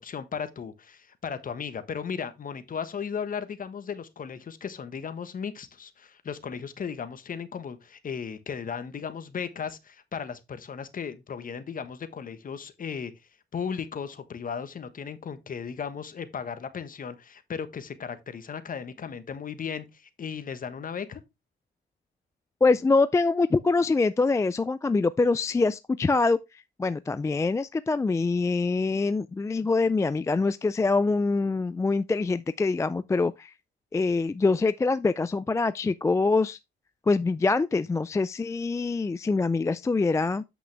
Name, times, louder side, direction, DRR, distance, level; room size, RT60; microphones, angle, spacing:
voice 1, 0.0-13.1 13.5-21.2, left 6 dB, 45° left, 1.2 m, -36 dB
voice 2, 22.6-26.4 26.8-33.5 33.9-36.6 37.1-40.4, left 3 dB, 15° left, 0.3 m, -24 dB
8.3 x 6.1 x 3.3 m
cardioid pair, 90°, 20 cm